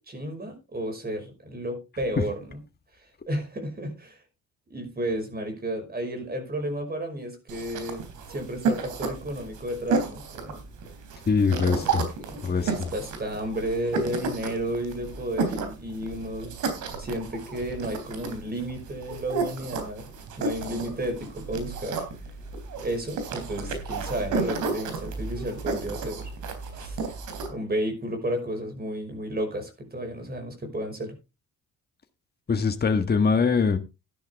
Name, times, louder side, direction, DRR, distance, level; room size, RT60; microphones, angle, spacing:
voice 1, 0.0-2.6 3.3-4.2 4.7-10.6 11.7-16.6 17.0-20.1 20.4-22.0 22.8-26.3 26.7-27.0 27.5-31.2, right 1 dB, 30° right, 5.4 m, -32 dB
sound 1, 7.5-27.5, right 4 dB, 80° right, 3.5 m, -32 dB
voice 2, 11.3-12.0 12.4-12.7 32.5-33.8, left 5 dB, 30° left, 1.6 m, -22 dB
13.0 x 10.5 x 3.5 m
cardioid pair, 90°, 30 cm